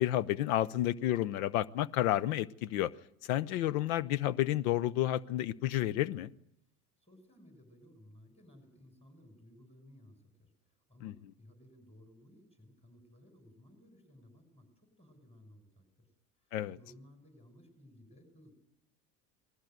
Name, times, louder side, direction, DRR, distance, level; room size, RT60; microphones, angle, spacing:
voice 1, 0.0-2.9 3.2-6.3 11.0-11.1 16.5-16.8, left 13 dB, 80° left, 21 dB, 0.7 m, -31 dB
voice 2, 7.0-14.7 15.0-16.1 16.4-18.5, left 1 dB, 15° left, 6 dB, 6.1 m, -59 dB
19.5 x 14.5 x 9.2 m, 0.79 s
hypercardioid pair, 85°, 42 cm